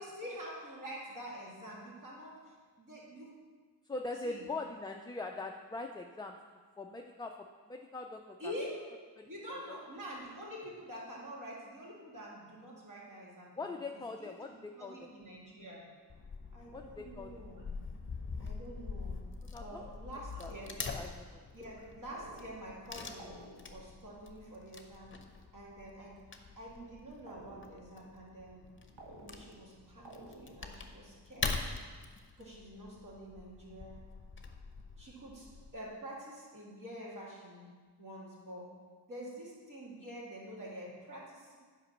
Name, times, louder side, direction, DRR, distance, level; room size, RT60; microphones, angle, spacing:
voice 1, 0.0-3.3 4.2-4.5 8.4-8.8 9.2-15.9 16.5-17.7 18.4-19.2 19.6-20.7 21.5-23.4 23.7-25.1 25.5-26.2 26.6-28.6 29.2-31.5 32.4-34.0 35.0-35.5 35.7-37.7 38.0-38.7 39.1-41.6, equal, 45° right, -5 dB, 2.8 m, -47 dB
voice 2, 3.9-6.4 6.8-7.3 7.7-8.5 9.2-9.8 13.6-15.1 16.7-17.3 19.5-19.8 20.4-20.5 20.9-21.4, left 3 dB, 10° left, 2 dB, 0.3 m, -42 dB
Wood / Tearing, 16.1-35.7, left 4 dB, 30° left, 0.8 m, -44 dB
sound 1, 20.4-21.1 22.1-22.9 23.2-23.9 27.3-28.0 29.0-29.7 30.0-30.8, right 1 dB, 85° right, 1.3 m, -53 dB
8.9 x 5.1 x 5.9 m, 1.5 s
wide cardioid pair, 115°, 42 cm